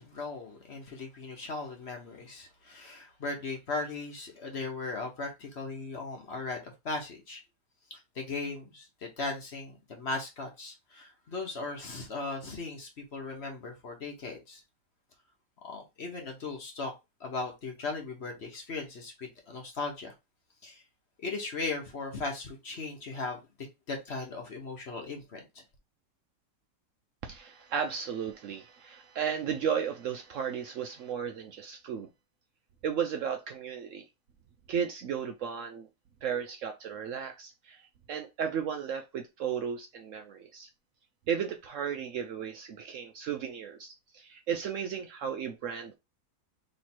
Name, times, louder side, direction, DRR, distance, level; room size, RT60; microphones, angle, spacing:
voice 1, 0.0-7.4 7.9-14.6 15.6-16.9 17.2-20.1 20.6-20.8 21.2-23.4 23.9-25.6, left 3 dB, 50° left, 1.1 m, -38 dB
voice 2, 27.2-32.1 32.8-34.0 34.7-35.9 36.2-40.7 41.3-46.0, right 7 dB, 65° right, 0.8 m, -34 dB
3.3 x 3.1 x 4.3 m
omnidirectional pair, 1.7 m